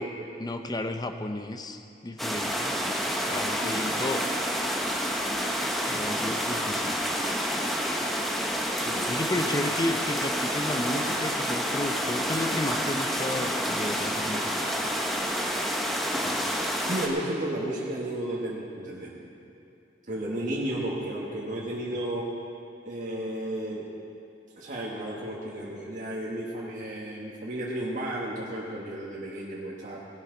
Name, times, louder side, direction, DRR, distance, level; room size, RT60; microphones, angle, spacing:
voice 1, 0.4-2.8 3.3-4.3 5.9-7.0 9.1-14.7, left 1 dB, 20° left, 7 dB, 0.7 m, -32 dB
sound 1, 2.2-17.1, equal, ahead, 1.2 m, -29 dB
voice 2, 16.8-19.3 20.1-22.3 22.8-23.9 24.6-30.0, right 1 dB, 45° right, -5 dB, 1.6 m, -33 dB
18.0 x 11.5 x 4.0 m, 2.7 s
head